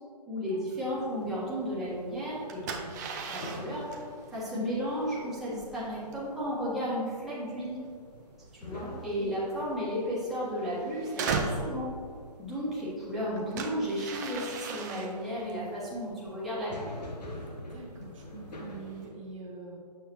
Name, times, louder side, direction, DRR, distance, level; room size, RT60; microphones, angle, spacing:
voice 1, 0.3-3.9 4.3-7.8 8.6-11.9 12.4-16.9, equal, ahead, -11 dB, 1.4 m, -34 dB
sound 1, 0.7-19.1, right 4 dB, 25° right, 0.6 m, -40 dB
sound 2, 1.1-19.1, left 1 dB, 75° left, 1.3 m, -47 dB
voice 2, 8.8-9.6 17.3-19.8, right 3 dB, 50° right, -1 dB, 1.0 m, -45 dB
7.3 x 5.6 x 3.0 m, 2.3 s
figure-of-eight pair, 140°, 21 cm